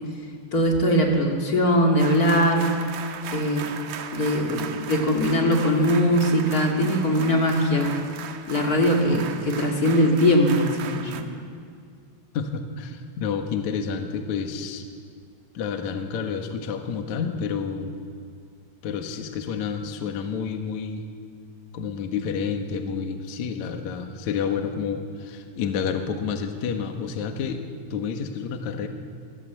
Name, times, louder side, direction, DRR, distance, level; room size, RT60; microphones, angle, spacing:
voice 1, 0.5-2.8 3.3-3.7 4.1-7.9 8.4-11.3, equal, 35° left, 1 dB, 1.5 m, -21 dB
sound 1, 2.0-11.2, right 7 dB, 70° right, 1.9 m, -37 dB
voice 2, 12.3-14.9 15.5-18.0 18.8-21.1 21.7-27.6 27.9-28.9, left 6 dB, 65° left, 5 dB, 1.9 m, -29 dB
24.5 x 18.0 x 8.1 m, 2.3 s
omnidirectional pair, 5.4 m